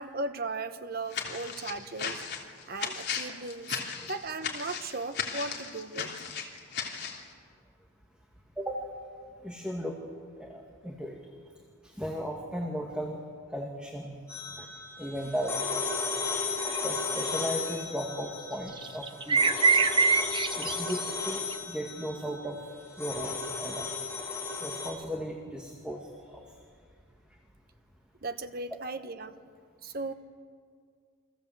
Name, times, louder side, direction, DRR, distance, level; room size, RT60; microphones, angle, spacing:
voice 1, 0.0-2.2 2.7-3.8 4.1-6.1 28.2-29.4 29.8-30.1, right 3 dB, 45° right, 9 dB, 1.1 m, -37 dB
sound 1, 1.1-7.2, left 6 dB, 50° left, 3.1 m, -36 dB
voice 2, 9.4-10.0 10.4-11.2 11.8-13.2 13.5-14.2 14.6-14.7 15.0-15.7 16.7-19.7 20.6-22.6 23.0-23.9 24.6-26.1 26.3-26.4, equal, 5° right, 0 dB, 2.0 m, -36 dB
sound 2, 14.3-24.9, left 4 dB, 10° left, 4.1 m, -35 dB
sound 3, 16.6-16.8 17.2-17.4 18.8-21.5, right 4 dB, 20° right, 0.7 m, -24 dB
28.5 x 24.0 x 8.0 m, 2.1 s
head